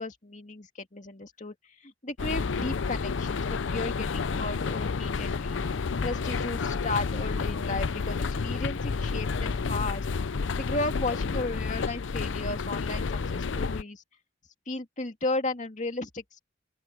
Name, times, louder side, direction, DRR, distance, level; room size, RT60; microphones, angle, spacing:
voice 1, 0.0-5.6 6.0-10.1 10.5-14.0 14.7-16.4, left 2 dB, 40° left, 2.3 m, -34 dB
sound 1, 2.2-13.8, left 4 dB, 80° left, 0.6 m, -30 dB
sound 2, 4.6-10.0, equal, 20° right, 6.7 m, -54 dB
open air
head